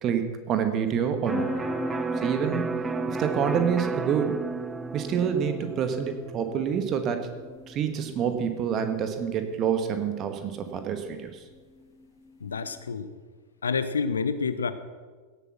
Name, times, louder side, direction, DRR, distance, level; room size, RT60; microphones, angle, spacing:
voice 1, 0.0-1.5 2.2-2.7 3.1-4.4 4.9-7.3 7.7-11.3, right 7 dB, 30° right, 7 dB, 1.7 m, -27 dB
sound 1, 1.3-12.8, left 2 dB, 10° left, 1.7 m, -39 dB
Electric guitar, 1.3-8.9, right 5 dB, 15° right, 0.5 m, -34 dB
voice 2, 12.4-13.1 13.6-14.7, left 5 dB, 70° left, 12 dB, 0.8 m, -28 dB
17.0 x 8.2 x 6.1 m, 1.4 s
figure-of-eight pair, 90°, 0 cm